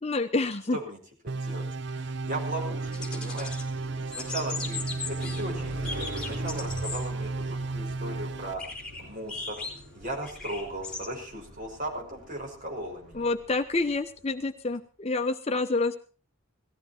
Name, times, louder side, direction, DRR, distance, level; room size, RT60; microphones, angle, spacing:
voice 1, 0.0-0.8 13.1-16.0, left 3 dB, 30° left, 8 dB, 0.8 m, -28 dB
voice 2, 1.2-1.6 1.9-3.6 4.1-8.6 9.0-13.3, right 1 dB, 40° right, 0 dB, 5.7 m, -37 dB
sound 1, 1.3-8.5, right 3 dB, 60° right, 0.6 m, -34 dB
Car passing by, 2.1-14.2, equal, 80° right, 5.9 m, -44 dB
sound 2, 2.9-3.7 4.0-5.4 5.8-7.0 7.5-7.6 8.6-11.1, left 4 dB, 5° left, 4.1 m, -38 dB
18.0 x 14.5 x 4.4 m, 0.39 s
head